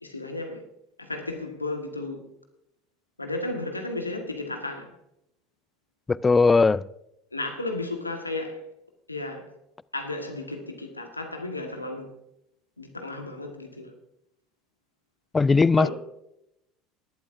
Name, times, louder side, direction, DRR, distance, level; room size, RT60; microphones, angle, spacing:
voice 1, 0.0-0.6 1.0-2.2 3.2-4.9 7.3-8.7 9.1-9.5 9.9-12.1 12.8-13.9 15.8-15.9, left 2 dB, 85° left, 1.5 m, -33 dB
voice 2, 6.1-6.8 15.3-15.9, left 4 dB, 20° left, 0.3 m, -19 dB
19.0 x 11.5 x 2.6 m
figure-of-eight pair, 70°, 0 cm